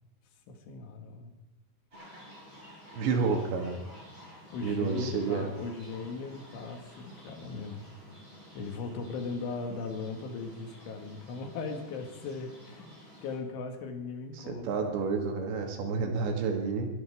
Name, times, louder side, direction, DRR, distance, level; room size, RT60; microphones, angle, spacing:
voice 1, 0.5-1.3 3.2-3.5 4.5-7.9 8.5-15.0, left 4 dB, 85° left, 5 dB, 4.3 m, -39 dB
sound 1, 1.9-13.4, equal, 25° right, 6.2 m, -52 dB
voice 2, 2.9-3.7 4.6-5.5 14.4-16.9, right 5 dB, 75° right, 3 dB, 4.1 m, -30 dB
23.0 x 11.0 x 4.8 m, 1.0 s
omnidirectional pair, 5.3 m